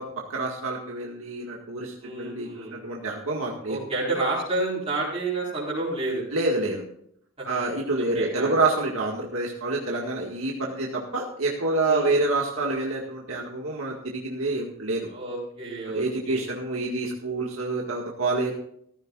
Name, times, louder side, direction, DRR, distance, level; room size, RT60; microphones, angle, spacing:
voice 1, 0.0-3.8 6.3-6.8 7.4-15.1 15.9-18.5, right 2 dB, 85° right, -1 dB, 2.0 m, -27 dB
voice 2, 2.0-2.8 3.7-6.2 7.4-7.5 8.0-8.6 11.9-12.1 15.1-16.4 18.4-18.5, right 2 dB, 30° right, -7 dB, 4.6 m, -30 dB
15.5 x 14.5 x 2.5 m, 0.67 s
head